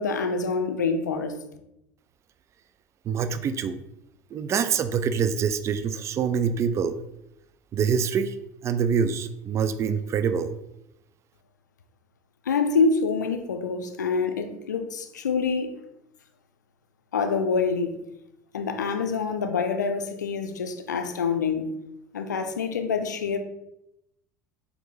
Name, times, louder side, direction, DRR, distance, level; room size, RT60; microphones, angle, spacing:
voice 1, 0.0-1.4 12.5-15.7 17.1-17.9 18.5-21.7 22.1-23.4, left 5 dB, 80° left, 7 dB, 0.4 m, -26 dB
voice 2, 3.1-3.8 4.3-7.0 7.7-8.3 8.6-10.5, right 6 dB, 30° right, 11 dB, 0.3 m, -25 dB
4.3 x 2.7 x 3.2 m, 0.84 s
figure-of-eight pair, 65°, 10 cm